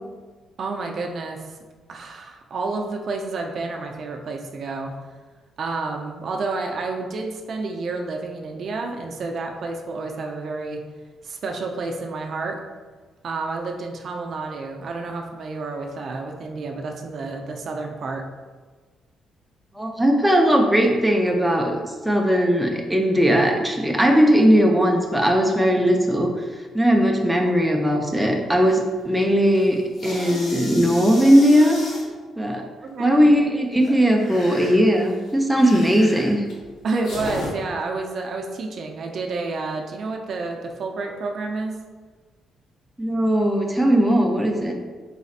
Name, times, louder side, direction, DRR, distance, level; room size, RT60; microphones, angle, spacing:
voice 1, 0.6-1.6 1.9-4.9 5.6-10.8 11.2-12.6 13.2-18.3 32.8-33.1 36.8-41.8, right 3 dB, 55° right, 2 dB, 0.5 m, -30 dB
voice 2, 19.7-21.8 22.0-26.3 26.7-31.8 32.4-32.7 33.0-36.4 43.0-44.7, equal, 5° right, 1 dB, 0.5 m, -18 dB
sound 1, 28.7-29.1 29.4-32.0 33.7-37.5, left 1 dB, 65° left, 1.1 m, -35 dB
4.1 x 3.9 x 2.5 m, 1.4 s
cardioid pair, 90°, 0 cm